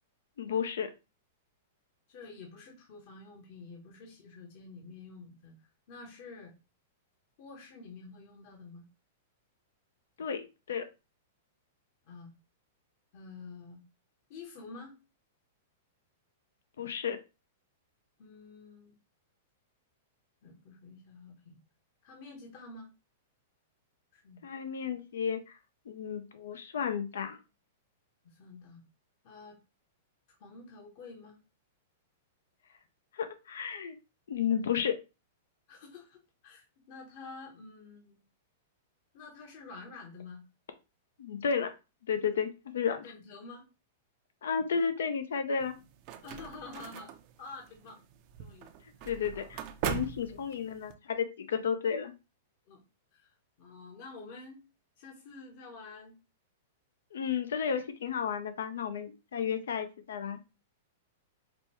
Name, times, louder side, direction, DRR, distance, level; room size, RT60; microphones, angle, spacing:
voice 1, 0.4-0.9 10.2-10.9 16.8-17.2 24.4-25.6 25.9-27.4 33.1-34.0 34.3-35.0 41.2-41.7 42.1-43.1 44.4-45.8 49.1-52.1 57.1-60.4, left 7 dB, 80° left, 9 dB, 0.5 m, -32 dB
voice 2, 2.1-6.5 7.4-8.9 12.1-12.3 13.1-13.8 14.3-14.9 18.2-19.0 20.4-21.6 22.0-22.9 24.1-24.4 28.2-28.8 29.2-29.6 30.4-31.4 35.7-38.2 39.1-40.4 43.0-43.7 46.2-47.1 47.4-48.0 48.4-48.7 49.0-49.5 52.7-52.9 53.1-54.6 55.0-56.2, left 3 dB, 55° left, 1 dB, 1.0 m, -49 dB
sound 1, 45.6-50.9, right 9 dB, 45° right, 0.5 m, -40 dB
5.0 x 2.2 x 2.9 m, 0.29 s
hypercardioid pair, 125°, 0 cm